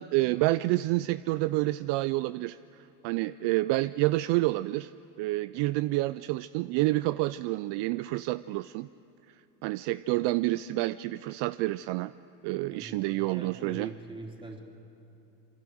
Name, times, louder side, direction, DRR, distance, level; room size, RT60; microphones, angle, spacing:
voice 1, 0.0-2.6 3.0-4.9 5.2-8.9 9.6-12.1 12.4-13.9, right 19 dB, 55° right, 16 dB, 0.5 m, -28 dB
voice 2, 12.7-14.6, right 2 dB, 10° right, 1 dB, 3.4 m, -43 dB
27.5 x 23.0 x 6.4 m, 2.9 s
supercardioid pair, 90°, 49 cm